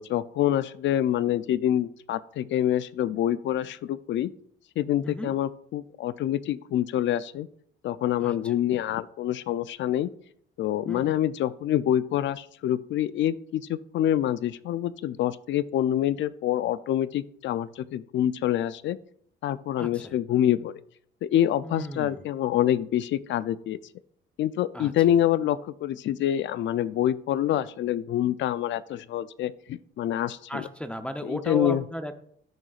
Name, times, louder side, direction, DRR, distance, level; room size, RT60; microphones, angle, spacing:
voice 1, 0.0-4.3 4.8-7.5 7.8-10.1 10.6-19.0 19.4-20.7 21.2-23.8 24.4-30.6 31.2-31.8, left 11 dB, 70° left, 16 dB, 0.5 m, -26 dB
voice 2, 8.2-8.5 10.9-11.1 19.8-20.1 21.6-22.2 24.7-24.9 30.5-32.2, equal, 5° left, 8 dB, 0.7 m, -35 dB
13.5 x 6.2 x 2.4 m, 0.65 s
cardioid pair, 90°, 20 cm